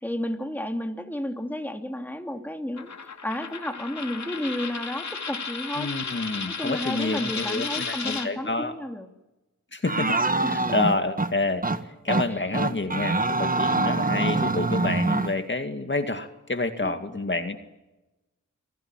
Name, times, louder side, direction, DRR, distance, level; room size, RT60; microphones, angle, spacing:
voice 1, 0.0-2.9 3.2-5.9 6.5-9.1 10.4-10.7 12.3-12.4 16.8-16.9, left 1 dB, 5° left, 5 dB, 2.7 m, -32 dB
Coin (dropping), 2.8-8.3, left 5 dB, 70° left, 2.7 m, -34 dB
voice 2, 5.8-8.7 9.7-11.7 12.0-17.6, left 2 dB, 40° left, 7 dB, 2.2 m, -28 dB
sound 1, 9.9-11.3 11.6-11.8 12.1-12.3 12.5-15.3, right 2 dB, 30° right, 1.5 m, -24 dB
28.0 x 18.0 x 9.1 m, 1.0 s
wide cardioid pair, 80°, 30 cm